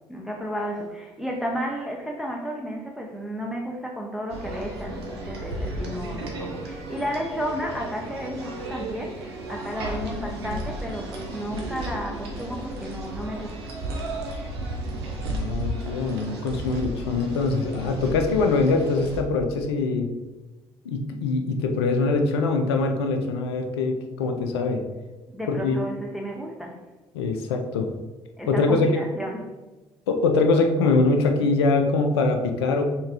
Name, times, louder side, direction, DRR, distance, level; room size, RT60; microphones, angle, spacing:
voice 1, 0.1-13.7 25.3-26.8 28.4-29.5, equal, ahead, -1 dB, 0.7 m, -32 dB
sound 1, 4.3-19.2, right 1 dB, 80° right, 0.6 m, -34 dB
voice 2, 15.2-20.1 20.8-24.8 25.5-25.8 27.1-27.9 28.5-28.9 30.1-32.8, left 3 dB, 80° left, 5 dB, 0.4 m, -23 dB
3.6 x 3.3 x 2.9 m, 1.1 s
hypercardioid pair, 50°, 13 cm